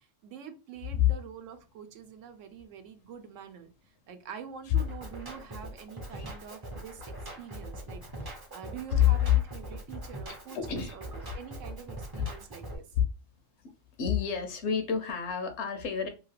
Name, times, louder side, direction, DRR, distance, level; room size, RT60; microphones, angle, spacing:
voice 1, 0.0-3.7 4.1-11.1 11.3-12.9, right 7 dB, 80° right, 0.9 m, -46 dB
Drum kit, 4.8-12.8, right 1 dB, 30° right, 0.5 m, -42 dB
voice 2, 8.9-9.3 10.5-11.0 12.1-12.3 13.6-13.7 14.0-16.1, left 10 dB, 70° left, 0.8 m, -27 dB
2.8 x 2.4 x 3.1 m
omnidirectional pair, 1.3 m